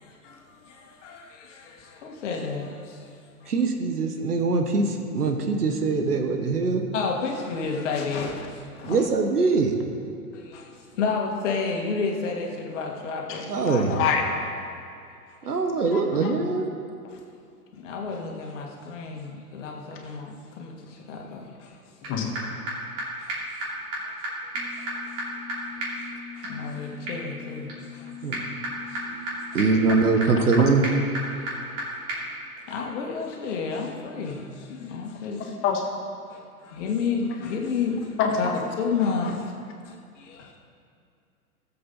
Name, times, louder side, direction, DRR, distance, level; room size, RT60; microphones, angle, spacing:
voice 1, 0.0-3.2 3.4-3.5 6.9-9.0 10.3-13.9 17.1-17.2 17.8-21.8 23.2-23.3 24.8-24.9 26.3-28.1 28.9-29.1 29.5-29.6 31.4-31.5 31.7-32.0 32.7-35.5 36.3-38.5 38.8-39.5 39.8-40.6, left 5 dB, 50° left, 0 dB, 1.9 m, -31 dB
voice 2, 3.5-6.8 8.8-9.7 13.5-14.0 15.4-16.6 28.2-28.5 29.5-30.8, right 4 dB, 75° right, 4 dB, 1.4 m, -23 dB
voice 3, 13.9-14.2 15.9-16.3 22.1-22.6 30.4-30.5 35.4-35.9 38.2-38.4 39.2-39.3, left 7 dB, 25° left, 2 dB, 1.5 m, -27 dB
sound 1, 22.0-22.1 22.4-22.5 22.7-22.8 23.0-23.1 23.3-23.4 23.6-23.7 23.9-24.0 24.2-24.3 24.5-31.8 32.1-32.2, equal, 30° right, 3.0 m, -33 dB
17.0 x 7.8 x 4.1 m, 2.4 s
figure-of-eight pair, 115°, 46 cm